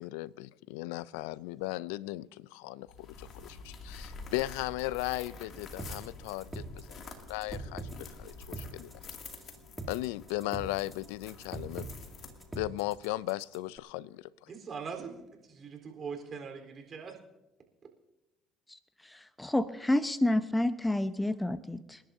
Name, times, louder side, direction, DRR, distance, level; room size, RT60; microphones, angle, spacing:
voice 1, 0.0-8.9 9.9-11.9 12.6-14.3, left 18 dB, 85° left, 0.4 m, -37 dB
sound 1, 2.9-12.7, left 4 dB, 55° left, 2.4 m, -48 dB
sound 2, 5.8-13.8, right 3 dB, 20° right, 2.3 m, -43 dB
voice 2, 14.5-17.1, right 5 dB, 45° right, 3.8 m, -42 dB
voice 3, 19.0-22.0, left 1 dB, 10° left, 0.8 m, -29 dB
28.5 x 11.5 x 2.7 m
hypercardioid pair, 65°, 0 cm